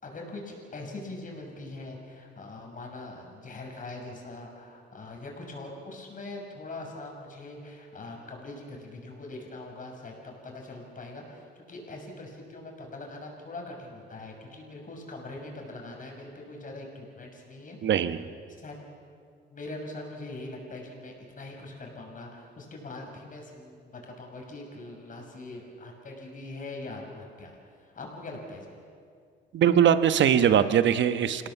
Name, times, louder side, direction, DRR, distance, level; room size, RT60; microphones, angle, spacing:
voice 1, 0.0-17.8 18.6-18.8 19.5-28.7, left 2 dB, 40° left, 1 dB, 6.2 m, -42 dB
voice 2, 17.8-18.3 29.5-31.5, right 9 dB, 65° right, 11 dB, 1.1 m, -21 dB
26.5 x 17.5 x 7.0 m, 2.3 s
cardioid pair, 90°, 20 cm